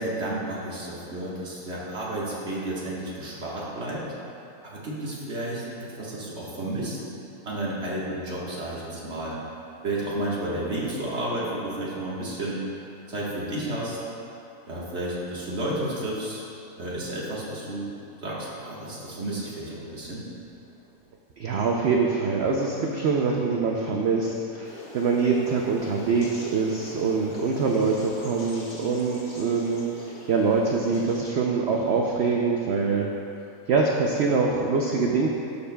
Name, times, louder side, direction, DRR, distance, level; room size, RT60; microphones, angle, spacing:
voice 1, 0.0-4.1 4.6-7.0 7.4-9.4 9.8-12.6 13.1-14.0 14.7-16.5 16.8-17.9 18.2-20.3, right 1 dB, 45° right, -6 dB, 1.7 m, -31 dB
voice 2, 21.4-33.1 33.7-35.3, right 4 dB, 70° right, 0 dB, 0.6 m, -24 dB
sound 1, 24.6-31.3, left 2 dB, 70° left, 1.5 m, -42 dB
12.0 x 6.8 x 2.3 m, 2.7 s
omnidirectional pair, 1.7 m